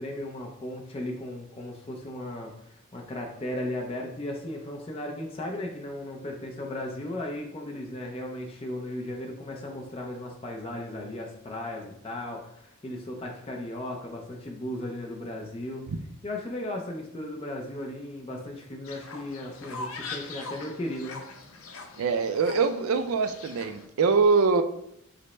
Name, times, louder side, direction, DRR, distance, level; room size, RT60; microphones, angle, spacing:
voice 1, 0.0-15.8 16.2-21.2, left 1 dB, 25° left, 1 dB, 0.5 m, -36 dB
Fowl, 18.8-23.8, left 3 dB, 80° left, 0.6 m, -42 dB
voice 2, 22.0-24.6, right 4 dB, 80° right, 9 dB, 0.4 m, -23 dB
5.0 x 2.1 x 4.2 m, 0.76 s
head